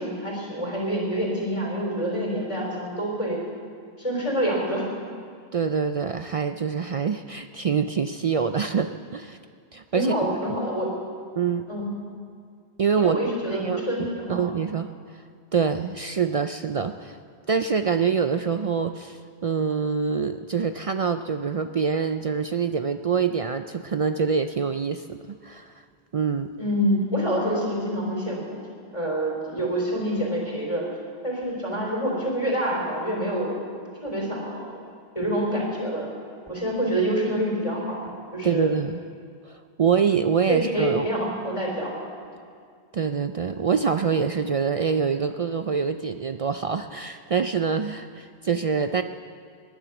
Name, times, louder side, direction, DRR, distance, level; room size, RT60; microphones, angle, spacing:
voice 1, 0.0-3.4 4.0-4.9 9.9-10.9 11.7-11.9 13.0-14.4 26.6-28.6 28.9-30.9 31.2-33.6 34.0-34.8 35.1-36.1 36.5-38.7 40.5-41.9 42.2-42.3, equal, 30° left, -2 dB, 3.7 m, -27 dB
voice 2, 5.5-9.4 9.7-10.2 10.5-10.6 11.4-11.7 12.8-13.2 13.5-13.8 14.3-15.2 15.5-17.2 17.5-25.7 26.1-26.5 38.4-39.0 39.4-41.1 42.9-49.0, right 6 dB, 60° right, 8 dB, 0.3 m, -25 dB
20.0 x 10.5 x 6.0 m, 2.2 s
omnidirectional pair, 1.1 m